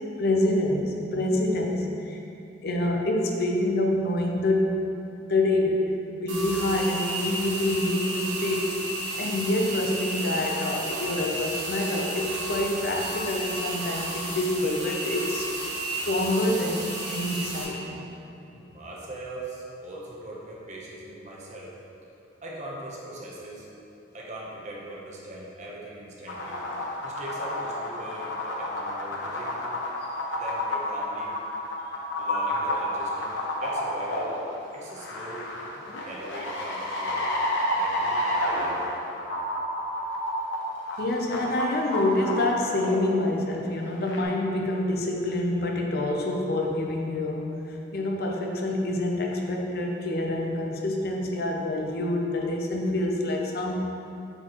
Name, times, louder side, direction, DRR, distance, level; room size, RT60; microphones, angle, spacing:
voice 1, 0.2-2.2 2.6-4.9 5.3-5.9 6.2-8.8 9.2-15.5 16.0-18.0 41.0-53.8, left 1 dB, 50° left, 0 dB, 0.6 m, -27 dB
sound 1, 6.3-17.6, right 1 dB, 70° right, 1.5 m, -33 dB
voice 2, 18.5-21.7 22.4-23.7 24.1-26.6 27.0-29.6 30.3-31.4 32.2-34.3 34.7-35.5 35.9-37.3 37.7-38.8, right 1 dB, 35° right, -4 dB, 0.9 m, -40 dB
sound 2, 26.3-43.2 44.0-44.2, left 1 dB, 75° left, 0.9 m, -30 dB
7.6 x 4.5 x 3.0 m, 2.8 s
head